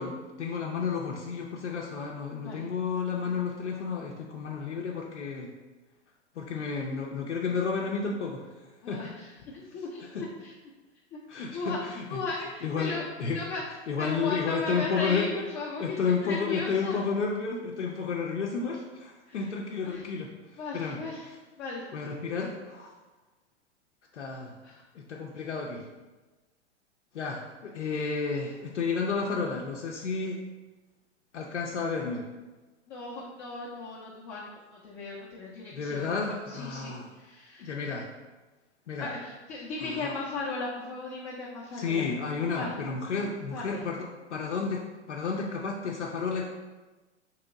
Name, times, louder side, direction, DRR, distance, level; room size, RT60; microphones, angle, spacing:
voice 1, 0.0-5.5 6.4-8.5 8.9-9.0 10.0-10.3 11.3-12.2 12.6-13.4 13.9-15.4 15.8-21.4 21.9-22.9 24.1-24.5 24.9-25.9 27.1-30.4 31.3-32.2 35.7-37.1 37.6-38.1 38.9-39.1 39.8-40.2 41.7-46.4, left 5 dB, 80° left, -1 dB, 0.6 m, -32 dB
voice 2, 8.8-10.5 11.3-13.0 13.3-13.6 14.0-17.0 19.3-19.4 19.8-20.0 20.6-21.3 21.6-21.9 24.6-24.8 32.9-36.1 36.5-36.9 37.2-37.7 39.0-42.1 42.5-42.7 43.5-43.8, left 3 dB, 25° left, -6 dB, 0.5 m, -36 dB
3.0 x 2.9 x 3.7 m, 1.2 s
figure-of-eight pair, 105°, 35 cm